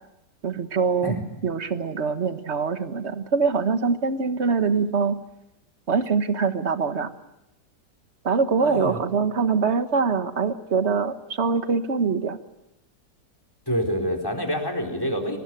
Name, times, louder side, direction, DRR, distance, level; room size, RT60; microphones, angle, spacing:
voice 1, 0.4-1.1 1.4-5.2 5.9-7.1 8.2-12.4, right 5 dB, 45° right, 10 dB, 1.5 m, -23 dB
voice 2, 8.6-9.0 13.7-15.4, equal, 15° left, 5 dB, 4.1 m, -27 dB
23.5 x 19.5 x 9.2 m, 0.89 s
omnidirectional pair, 1.8 m